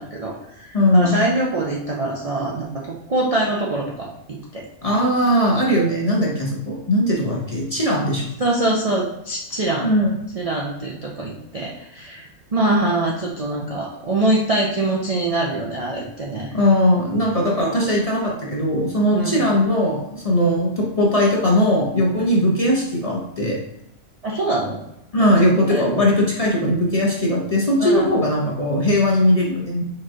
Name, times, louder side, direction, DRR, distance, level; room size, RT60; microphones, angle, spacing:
voice 1, 0.0-4.6 8.4-9.9 10.3-16.5 19.1-19.4 22.2-22.3 24.2-24.8 25.2-25.3 25.7-25.9 27.8-28.1, right 2 dB, 65° right, -3 dB, 0.3 m, -24 dB
voice 2, 0.7-1.2 4.8-8.3 9.8-10.1 16.5-23.6 25.1-29.8, left 1 dB, 40° left, -3 dB, 0.5 m, -19 dB
4.6 x 3.1 x 3.6 m, 0.83 s
omnidirectional pair, 1.5 m